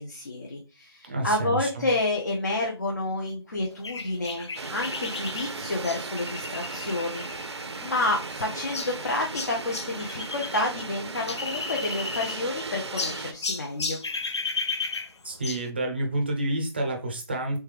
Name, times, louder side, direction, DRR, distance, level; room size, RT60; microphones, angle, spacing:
voice 1, 0.0-14.0, left 2 dB, 40° left, 0 dB, 0.7 m, -30 dB
voice 2, 1.1-1.9 15.2-17.6, right 1 dB, 25° right, 2 dB, 0.6 m, -29 dB
sound 1, 3.8-10.7 10.9-12.6 13.0-15.7, left 4 dB, 85° left, 0.6 m, -34 dB
sound 2, 4.6-13.3, right 4 dB, 80° right, 0.6 m, -37 dB
3.3 x 3.3 x 3.3 m, 0.33 s
figure-of-eight pair, 175°, 14 cm